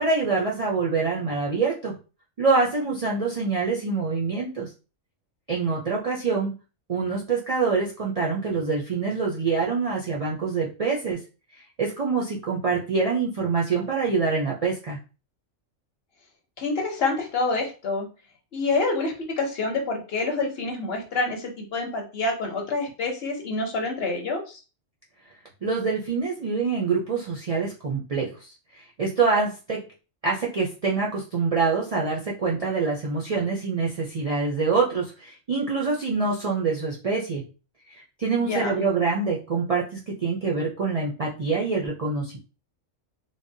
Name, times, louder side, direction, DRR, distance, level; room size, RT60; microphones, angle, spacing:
voice 1, 0.0-2.0 2.4-4.7 5.5-6.5 6.9-11.2 11.8-15.0 25.6-29.9 30.2-37.4 38.2-42.4, right 4 dB, 60° right, -3 dB, 0.3 m, -25 dB
voice 2, 16.6-18.1 18.5-24.6 38.4-38.7, left 3 dB, 55° left, 1 dB, 0.9 m, -27 dB
3.3 x 2.1 x 2.6 m, 0.32 s
omnidirectional pair, 1.4 m